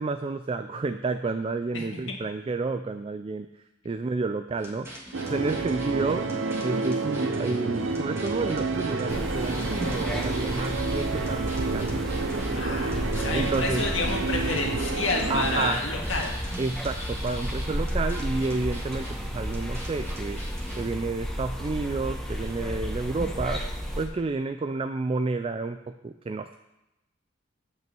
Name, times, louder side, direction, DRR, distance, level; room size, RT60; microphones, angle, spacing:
voice 1, 0.0-4.9 5.3-6.3 6.6-12.8 13.3-13.9 15.3-15.8 16.6-20.4 20.8-23.6 24.0-26.6, right 3 dB, 30° right, 8 dB, 0.3 m, -30 dB
sound 1, 4.6-20.9, equal, 15° right, 1.7 m, -43 dB
sound 2, 5.1-15.7, right 3 dB, 75° right, 0.8 m, -29 dB
sound 3, 9.1-24.1, equal, ahead, 1.2 m, -33 dB
voice 2, 12.6-16.3, left 3 dB, 75° left, 0 dB, 1.9 m, -29 dB
9.0 x 5.5 x 7.5 m, 0.93 s
head